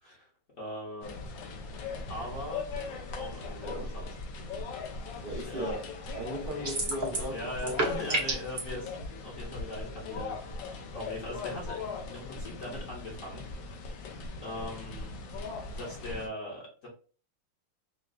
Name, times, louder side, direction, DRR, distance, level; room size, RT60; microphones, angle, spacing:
voice 1, 0.6-1.1 2.1-2.6 3.2-4.2 5.1-5.7 7.3-9.0 9.2-11.8 12.1-13.4 14.4-15.1 15.7-16.9, left 1 dB, 45° left, 1.3 m, -40 dB
sound 1, 1.0-16.3, left 3 dB, 65° left, 1.3 m, -39 dB
voice 2, 5.2-5.9 6.1-7.9, equal, 70° right, 0.4 m, -37 dB
sound 2, 6.6-7.3 7.6-8.6, right 2 dB, 35° right, 0.8 m, -29 dB
5.0 x 2.3 x 2.3 m
omnidirectional pair, 2.3 m